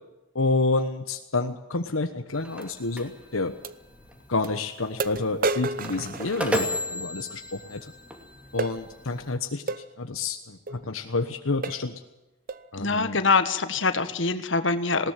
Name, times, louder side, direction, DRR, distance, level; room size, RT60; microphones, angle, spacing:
voice 1, 0.3-3.5 4.3-7.9 8.5-12.0 12.7-13.2, left 3 dB, 80° left, 7 dB, 1.2 m, -29 dB
sound 1, 2.3-9.4, equal, 5° right, 2.6 m, -35 dB
sound 2, 2.6-2.7 3.6-3.8 4.4-4.5 5.0-6.9 8.6-8.8 9.7-9.9 10.7-10.8 11.2-11.3 11.6-11.9 12.5-12.7, right 3 dB, 40° right, 0.8 m, -31 dB
voice 2, 12.8-15.1, left 4 dB, 60° left, 10 dB, 1.6 m, -24 dB
20.0 x 18.0 x 7.6 m, 1.0 s
head